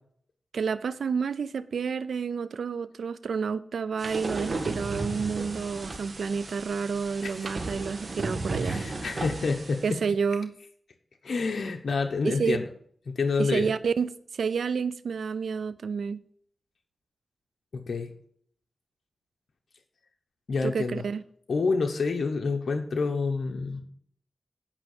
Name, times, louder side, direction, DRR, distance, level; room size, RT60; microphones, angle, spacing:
voice 1, 0.5-8.8 9.8-10.5 12.2-12.6 13.4-16.2 20.6-21.2, right 5 dB, 85° right, 0.3 m, -29 dB
sound 1, 4.0-9.9, right 3 dB, 60° right, 1.8 m, -34 dB
voice 2, 8.6-10.0 11.2-12.7 13.1-13.7 17.7-18.1 20.5-21.0 21.5-23.8, left 4 dB, 75° left, 0.9 m, -28 dB
9.0 x 5.6 x 6.6 m
cardioid pair, 50°, 0 cm